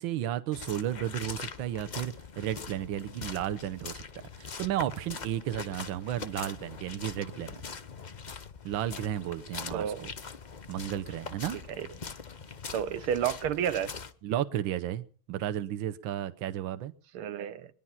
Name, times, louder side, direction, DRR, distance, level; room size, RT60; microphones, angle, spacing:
voice 1, 0.0-4.0 4.4-7.6 8.6-10.1 10.7-11.6 14.2-16.9, right 12 dB, 70° right, 1.6 m, -33 dB
sound 1, 0.5-14.1, left 5 dB, 80° left, 0.4 m, -42 dB
voice 2, 9.7-10.1 11.7-11.9 12.7-13.9 17.1-17.7, right 9 dB, 90° right, 1.8 m, -31 dB
21.5 x 11.0 x 5.8 m
omnidirectional pair, 2.3 m